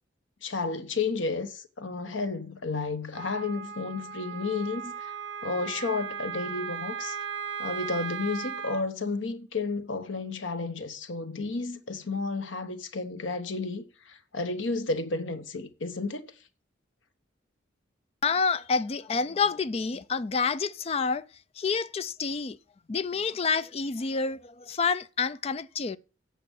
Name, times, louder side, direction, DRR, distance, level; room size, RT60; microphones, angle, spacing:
voice 1, 0.4-5.2 5.4-7.2 7.6-16.3, left 3 dB, 85° left, 1.1 m, -32 dB
Wind instrument woodwind instrument, 3.1-8.8, right 7 dB, 70° right, 1.0 m, -37 dB
voice 2, 18.2-21.3 21.6-22.6 22.9-26.0, left 5 dB, 35° left, 0.4 m, -28 dB
8.5 x 6.7 x 6.3 m
head